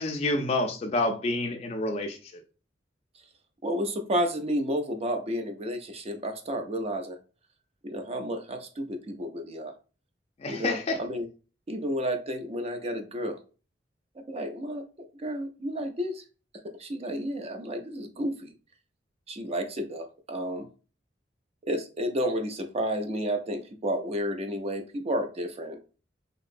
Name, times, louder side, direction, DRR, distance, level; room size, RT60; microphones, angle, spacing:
voice 1, 0.0-2.2 10.4-11.0, left 2 dB, 35° left, 0.4 m, -28 dB
voice 2, 3.6-7.2 7.8-9.7 10.5-11.3 11.7-13.4 14.2-16.2 16.8-18.5 19.3-20.7 21.7-25.8, equal, 35° right, 0.4 m, -31 dB
2.9 x 2.6 x 2.4 m
head